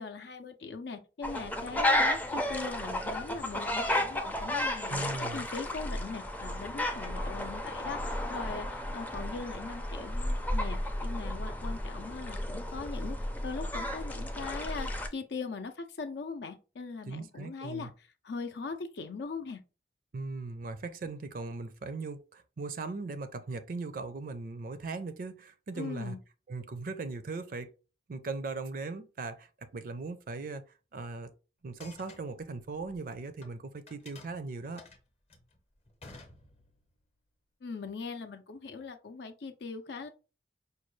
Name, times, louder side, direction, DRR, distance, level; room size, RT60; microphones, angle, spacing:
voice 1, 0.0-19.6 25.8-26.2 37.6-40.1, left 4 dB, 70° left, 0.5 m, -40 dB
sound 1, 1.2-15.1, left 1 dB, 10° left, 0.4 m, -33 dB
voice 2, 4.9-5.5 17.1-17.9 20.1-26.2 26.5-27.7 28.1-30.6 30.9-31.3 31.6-34.8, right 3 dB, 50° right, 0.4 m, -39 dB
sound 2, 31.6-33.5 33.9-36.9, left 3 dB, 35° left, 0.7 m, -53 dB
5.2 x 2.2 x 3.1 m
head